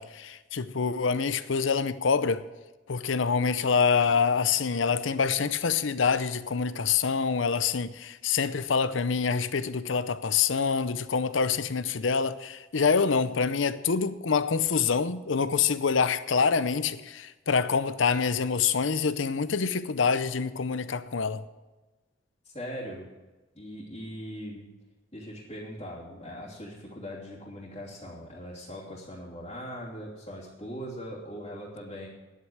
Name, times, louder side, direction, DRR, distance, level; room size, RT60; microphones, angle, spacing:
voice 1, 0.0-2.5 2.9-21.4, left 5 dB, 80° left, 0.7 m, -26 dB
voice 2, 22.4-23.1 23.5-24.7 25.1-32.1, equal, 30° left, 2.8 m, -40 dB
10.5 x 8.2 x 9.1 m
head